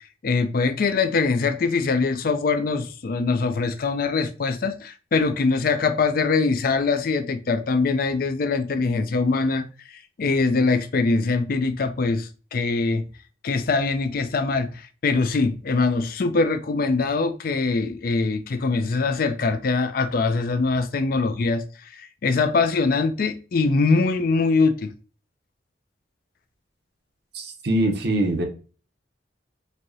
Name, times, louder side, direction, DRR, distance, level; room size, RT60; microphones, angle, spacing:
voice 1, 0.2-13.1 13.4-21.6 21.9-24.9, left 4 dB, 50° left, 0.4 m, -23 dB
voice 2, 27.3-28.4, right 1 dB, 60° right, 0.8 m, -23 dB
4.5 x 2.8 x 2.7 m
head